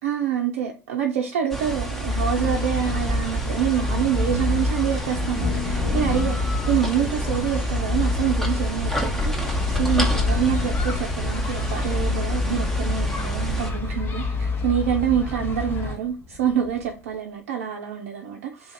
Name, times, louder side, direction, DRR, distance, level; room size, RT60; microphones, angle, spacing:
voice 1, 0.0-18.7, right 9 dB, 70° right, 0.4 m, -26 dB
sound 1, 1.5-13.7, right 2 dB, 5° left, 0.9 m, -29 dB
sound 2, 2.1-15.9, left 3 dB, 30° left, 0.8 m, -28 dB
Thunder, 3.7-16.9, left 4 dB, 45° left, 1.7 m, -33 dB
2.8 x 2.5 x 3.9 m
hypercardioid pair, 70°, 8 cm